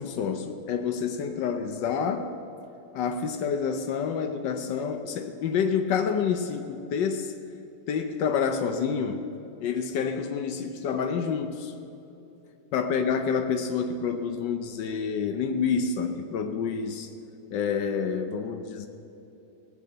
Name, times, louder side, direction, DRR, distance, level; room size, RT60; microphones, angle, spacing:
voice 1, 0.0-2.3 2.9-7.3 7.9-9.2 9.6-11.7 12.7-17.1 17.5-18.9, left 6 dB, 85° left, 7 dB, 1.5 m, -28 dB
18.5 x 6.6 x 7.9 m, 2.9 s
omnidirectional pair, 1.9 m